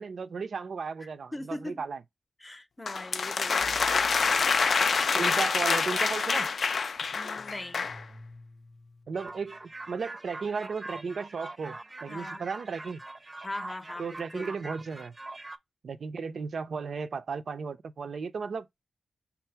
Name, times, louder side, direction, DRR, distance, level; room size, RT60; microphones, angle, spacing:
voice 1, 0.0-2.0 5.2-6.5 9.1-13.0 14.0-15.1 15.8-18.8, right 5 dB, 75° right, 0.5 m, -35 dB
voice 2, 1.0-1.8 2.4-3.8 7.1-7.9 12.1-12.5 13.4-14.5, left 1 dB, 25° left, 0.6 m, -40 dB
sound 1, 2.9-8.0, left 5 dB, 70° left, 0.3 m, -26 dB
sound 2, 3.6-5.5 6.0-6.1 6.4-9.9, left 2 dB, 90° left, 0.8 m, -52 dB
sound 3, 9.1-15.6, right 2 dB, 30° right, 0.6 m, -43 dB
5.6 x 2.0 x 4.3 m
cardioid pair, 70°, 0 cm